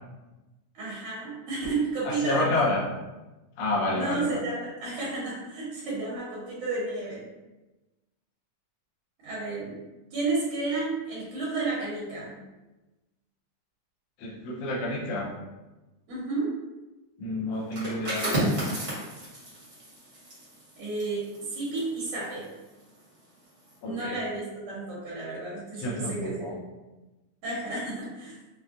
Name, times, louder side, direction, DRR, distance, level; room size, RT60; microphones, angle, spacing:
voice 1, 0.7-2.6 3.9-7.2 9.2-9.8 10.1-12.3 16.1-16.5 20.8-21.2 21.5-22.5 23.8-26.5 27.4-28.4, right 3 dB, 75° right, -7 dB, 2.5 m, -32 dB
voice 2, 2.0-2.8 3.6-4.4 14.2-15.3 17.2-18.8 23.8-24.2 25.7-26.6, left 2 dB, 75° left, -4 dB, 1.3 m, -29 dB
sound 1, 17.6-23.1 23.5-23.7, right 1 dB, 40° right, 1.0 m, -33 dB
5.8 x 2.2 x 2.5 m, 1.1 s
omnidirectional pair, 3.6 m